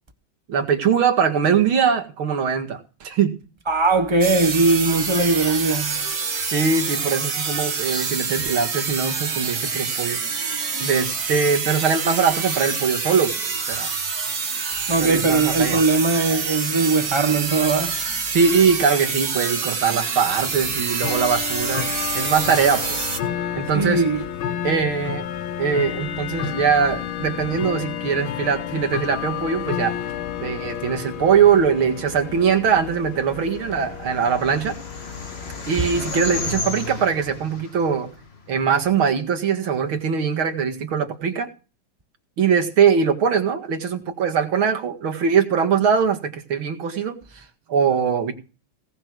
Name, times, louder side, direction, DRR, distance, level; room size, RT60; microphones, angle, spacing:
voice 1, 0.5-3.4 6.5-10.2 10.8-13.9 15.0-15.8 18.3-21.9 22.1-23.0 23.6-24.0 24.6-25.3 25.6-30.0 30.4-34.8 35.7-38.1 38.5-41.5 42.4-48.3, right 6 dB, 85° right, 2.7 m, -21 dB
voice 2, 3.7-6.0 14.9-18.1 23.7-24.2, right 3 dB, 20° right, 0.9 m, -20 dB
sound 1, 4.2-23.2, right 5 dB, 50° right, 2.1 m, -27 dB
Bell / Tick-tock, 20.3-36.7, left 10 dB, 85° left, 1.8 m, -31 dB
sound 2, 33.5-38.9, left 3 dB, 30° left, 1.9 m, -33 dB
18.0 x 6.7 x 6.2 m
omnidirectional pair, 2.2 m